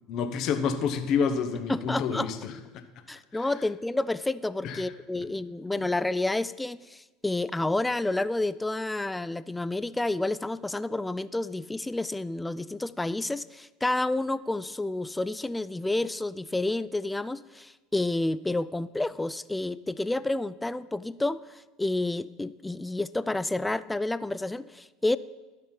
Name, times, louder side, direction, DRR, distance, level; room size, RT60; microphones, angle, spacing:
voice 1, 0.1-2.8 4.6-4.9 5.1-5.2 5.8-5.9, left 6 dB, 50° left, 8 dB, 1.0 m, -29 dB
voice 2, 1.7-2.3 3.1-25.2, left 2 dB, 10° left, 16 dB, 0.4 m, -30 dB
11.5 x 6.6 x 5.5 m, 1.2 s
figure-of-eight pair, 70°, 0 cm